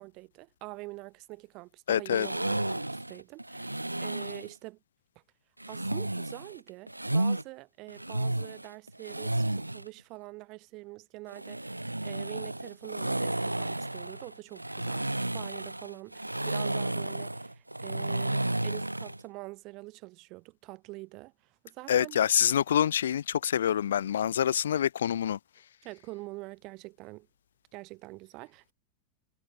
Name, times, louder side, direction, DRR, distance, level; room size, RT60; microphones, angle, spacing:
voice 1, 0.0-4.8 5.7-22.2 25.8-27.3 27.7-28.7, right 23 dB, 40° right, 1.7 m, -45 dB
voice 2, 1.9-2.3 21.9-25.4, left 9 dB, 65° left, 0.5 m, -26 dB
sound 1, 2.1-4.5 5.6-7.4 7.9-9.9 11.3-19.2, right 1 dB, 85° right, 0.6 m, -32 dB
figure-of-eight pair, 90°, 0 cm